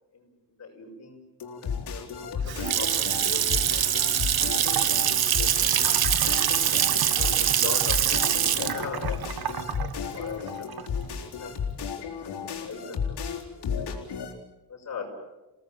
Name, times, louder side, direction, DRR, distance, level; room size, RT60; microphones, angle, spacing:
voice 1, 0.1-1.2 1.6-5.0 5.4-6.3 7.0-11.5 12.2-13.3 13.5-13.9 14.7-15.1, left 4 dB, 40° left, 0 dB, 6.2 m, -41 dB
sound 1, 1.4-14.3, left 6 dB, 75° left, 4.2 m, -34 dB
Water tap faucet / Sink (filling or washing) / Splash splatter, 2.2-11.1, right 10 dB, 65° right, 1.3 m, -24 dB
sound 2, 2.3-10.4, right 1 dB, 85° right, 3.4 m, -47 dB
28.0 x 18.0 x 9.1 m, 1.0 s
wide cardioid pair, 175°, 40 cm